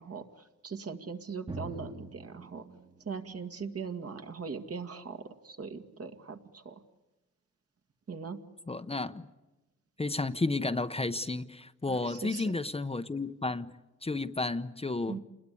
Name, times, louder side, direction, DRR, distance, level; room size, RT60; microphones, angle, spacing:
voice 1, 0.0-2.6 3.1-6.8 8.1-8.4 11.9-12.6 15.1-15.2, right 5 dB, 55° right, 2.1 m, -40 dB
Drum, 1.5-5.0, right 2 dB, 20° right, 1.4 m, -46 dB
voice 2, 8.7-9.3 10.0-13.7 14.0-15.2, left 3 dB, 20° left, 0.8 m, -32 dB
28.5 x 20.5 x 8.4 m
wide cardioid pair, 105°, 30 cm